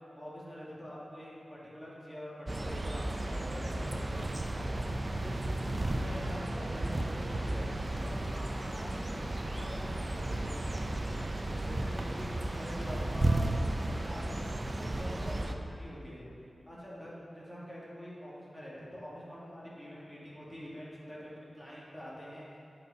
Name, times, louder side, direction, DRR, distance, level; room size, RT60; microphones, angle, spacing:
voice 1, 0.2-7.7 8.0-8.9 9.5-11.2 11.6-13.5 13.9-16.2 16.7-22.6, equal, 5° left, -7 dB, 2.0 m, -46 dB
sound 1, 2.5-15.5, right 1 dB, 30° right, 0.5 m, -34 dB
10.0 x 4.4 x 5.5 m, 2.6 s
wide cardioid pair, 105°, 0 cm